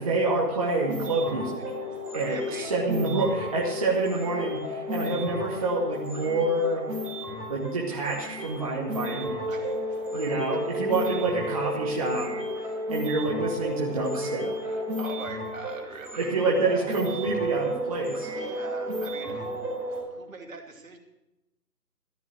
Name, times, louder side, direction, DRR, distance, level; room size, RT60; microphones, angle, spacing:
voice 1, 0.0-1.6 2.1-6.9 7.5-9.4 10.1-12.3 12.9-14.5 16.2-18.3, right 3 dB, 20° right, -3 dB, 1.2 m, -27 dB
sound 1, 0.6-20.0, equal, ahead, 1.0 m, -33 dB
voice 2, 2.2-2.7 9.5-10.0 12.6-12.8 14.6-16.3 18.3-19.7 20.1-21.0, right 3 dB, 55° right, 2 dB, 2.6 m, -42 dB
14.0 x 9.6 x 6.3 m, 0.94 s
figure-of-eight pair, 155°, 48 cm